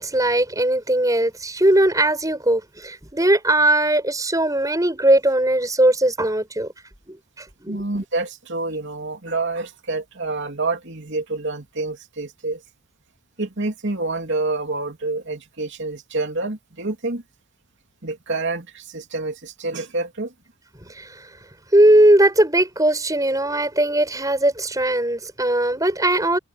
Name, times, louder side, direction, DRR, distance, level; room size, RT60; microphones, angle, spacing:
voice 1, 0.0-6.7 7.1-7.2 7.6-7.8 21.0-21.1 21.7-26.4, right 1 dB, 15° right, 6.8 m, -19 dB
voice 2, 7.7-12.6 13.4-17.2 18.0-20.3, right 3 dB, 55° right, 3.2 m, -27 dB
head